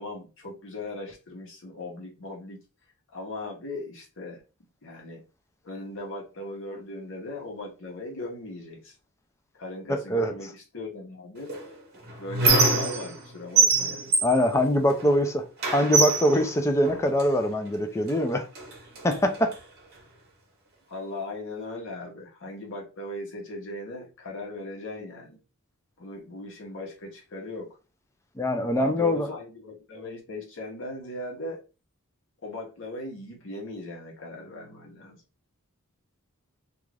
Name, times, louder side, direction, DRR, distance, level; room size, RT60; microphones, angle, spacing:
voice 1, 0.0-2.6 3.1-4.4 4.8-5.2 5.6-9.0 9.5-11.5 12.2-14.1 20.9-25.4 26.0-27.7 28.8-31.6 32.4-35.2, left 2 dB, 55° left, 0.8 m, -38 dB
voice 2, 9.9-10.3 14.2-15.5 15.7-18.5 19.0-19.6 28.4-29.3, equal, 15° left, 0.3 m, -23 dB
Squeak, 11.5-13.3 13.6-15.2 15.6-17.3 18.1-18.2 18.5-19.6, right 3 dB, 45° right, 0.9 m, -25 dB
2.4 x 2.3 x 3.2 m
head